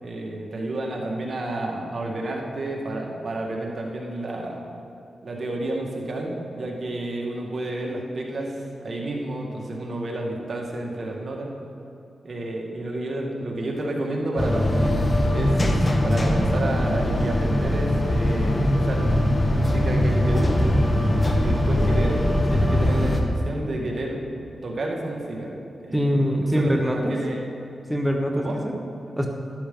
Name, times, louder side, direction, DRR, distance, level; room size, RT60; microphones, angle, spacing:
voice 1, 0.0-4.6 5.2-11.6 12.2-15.0 15.3-19.2 19.5-20.8 21.4-24.2 24.6-25.5 25.8-26.0 26.5-27.5 28.4-28.6, right 1 dB, 55° right, -1 dB, 2.0 m, -30 dB
sound 1, 14.4-23.2, left 1 dB, 30° left, 1.3 m, -21 dB
voice 2, 25.9-27.1 27.9-28.7 29.2-29.3, equal, 5° right, 1 dB, 1.3 m, -23 dB
12.5 x 11.5 x 3.9 m, 2.7 s
cardioid pair, 60°, 0 cm